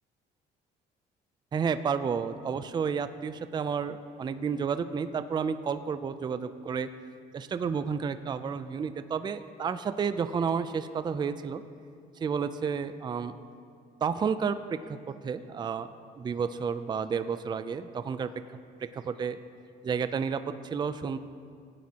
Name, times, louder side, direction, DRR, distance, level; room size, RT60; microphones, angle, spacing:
voice 1, 1.5-6.9 7.3-11.6 12.2-13.3 14.0-14.6 14.9-15.0 15.2-15.9 16.2-18.3 18.8-19.4 19.8-21.2, right 6 dB, 25° right, 11 dB, 0.4 m, -31 dB
17.5 x 9.3 x 2.9 m, 2.3 s
cardioid pair, 110°, 17 cm